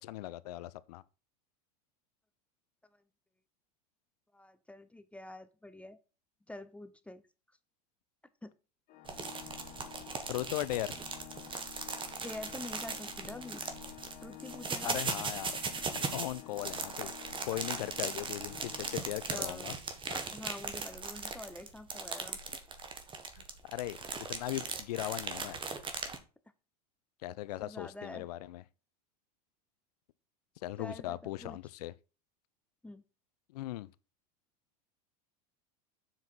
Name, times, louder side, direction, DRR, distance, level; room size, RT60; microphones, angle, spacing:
voice 1, 0.0-1.0 10.3-11.0 14.8-15.6 15.9-17.1 17.4-19.7 20.1-20.2 23.4-24.0 24.3-25.6 27.2-28.6 30.6-31.9 33.5-33.9, left 16 dB, 75° left, 0.6 m, -38 dB
voice 2, 4.3-6.0 6.5-7.2 8.4-8.5 12.2-13.6 14.2-15.0 19.3-19.7 20.3-22.4 27.6-28.3 30.8-31.6 32.8-33.0, left 1 dB, 5° left, 0.7 m, -46 dB
Organ, 8.9-19.7, left 16 dB, 45° left, 1.1 m, -52 dB
sound 1, 9.1-26.2, right 4 dB, 25° right, 1.6 m, -39 dB
7.6 x 5.7 x 4.5 m
hypercardioid pair, 100°, 20 cm